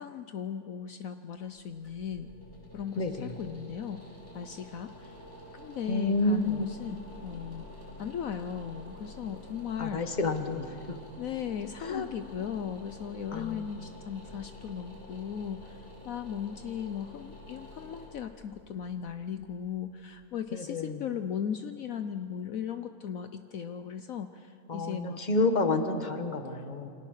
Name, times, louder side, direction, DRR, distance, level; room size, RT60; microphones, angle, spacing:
voice 1, 0.0-2.3 2.7-4.0 4.3-5.2 5.5-7.7 8.0-10.0 11.2-25.2 26.5-26.6, left 8 dB, 65° left, 9 dB, 1.2 m, -37 dB
sound 1, 1.5-20.4, left 1 dB, 45° left, 4.9 m, -49 dB
voice 2, 3.0-3.3 5.9-6.6 9.8-11.0 11.8-12.0 13.3-13.6 20.5-21.0 24.7-26.9, left 2 dB, 30° left, 7 dB, 1.5 m, -29 dB
28.0 x 24.5 x 6.6 m, 2.7 s
omnidirectional pair, 1.6 m